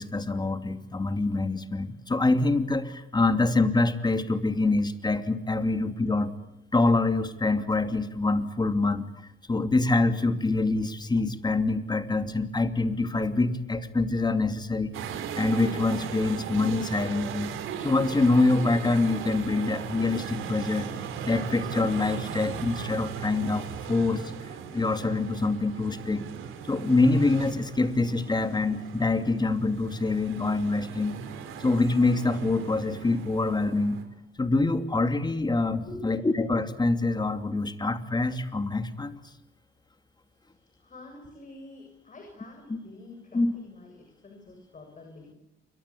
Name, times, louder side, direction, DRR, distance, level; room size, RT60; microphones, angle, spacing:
voice 1, 0.0-6.3 6.7-9.1 9.5-14.9 15.3-17.5 17.8-20.9 21.2-24.2 24.7-26.2 26.7-31.2 31.6-34.0 34.4-39.2 42.7-42.8 43.3-43.5, left 3 dB, 20° left, 9 dB, 2.7 m, -25 dB
sound 1, 14.9-34.0, right 8 dB, 85° right, 4.2 m, -38 dB
voice 2, 40.3-45.3, left 2 dB, 40° left, 3 dB, 7.5 m, -47 dB
29.0 x 24.0 x 8.6 m, 0.86 s
cardioid pair, 90°, 20 cm